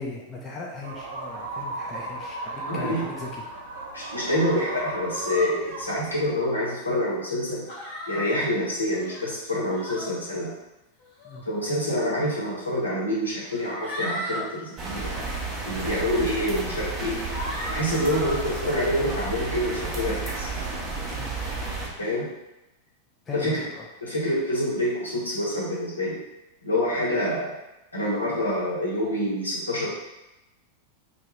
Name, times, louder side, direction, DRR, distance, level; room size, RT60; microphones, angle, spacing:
voice 1, 0.0-3.4 11.2-11.4 21.1-21.3 23.3-23.8, left 3 dB, 20° left, -2 dB, 0.5 m, -37 dB
sound 1, 0.8-6.4, right 2 dB, 60° right, 0.4 m, -35 dB
voice 2, 2.7-3.1 3.9-7.7 8.1-10.5 11.5-15.1 15.6-17.2 17.7-20.5 22.0-22.3 23.3-23.6 24.0-26.2 26.6-27.5 27.9-29.9, left 1 dB, 80° left, -6 dB, 0.8 m, -27 dB
sound 2, 7.7-8.3 8.9-9.3 9.7-10.1 11.0-11.4 12.4-12.5 13.4-14.5 14.9-15.2 15.9-16.0 16.6-16.8 17.3-18.4, equal, 45° left, 1.2 m, -36 dB
sound 3, 14.8-21.9, right 3 dB, 20° right, 0.7 m, -32 dB
2.2 x 2.2 x 3.2 m, 0.98 s
figure-of-eight pair, 90°, 0 cm